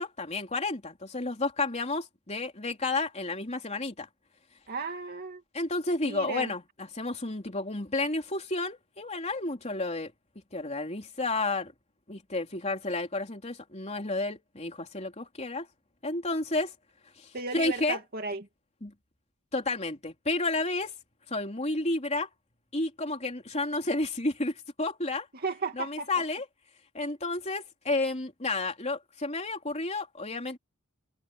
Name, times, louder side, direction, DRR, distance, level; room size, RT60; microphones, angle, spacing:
voice 1, 0.0-4.1 5.5-10.1 10.5-11.7 12.1-15.7 16.0-16.7 17.2-18.0 18.8-18.9 19.5-21.0 21.3-22.3 22.7-25.3 25.8-26.4 26.9-30.6, left 2 dB, 30° left, 3.6 m, -31 dB
voice 2, 4.7-5.4 6.0-6.5 17.3-18.5 25.3-26.1, right 4 dB, 45° right, 2.5 m, -35 dB
head